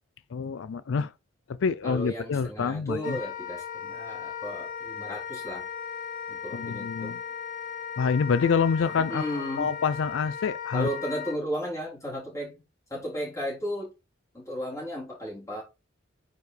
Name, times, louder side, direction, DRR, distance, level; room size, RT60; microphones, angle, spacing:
voice 1, 0.3-1.1 1.6-3.2 6.5-7.2 8.0-9.2 9.6-10.9, left 5 dB, 85° left, 0.4 m, -26 dB
voice 2, 1.8-5.7 6.3-7.1 9.0-9.8 10.7-12.6 12.9-13.9 14.3-15.6, equal, 15° left, 3.5 m, -34 dB
Wind instrument woodwind instrument, 3.0-11.4, left 7 dB, 45° left, 1.2 m, -37 dB
9.1 x 5.2 x 3.3 m
head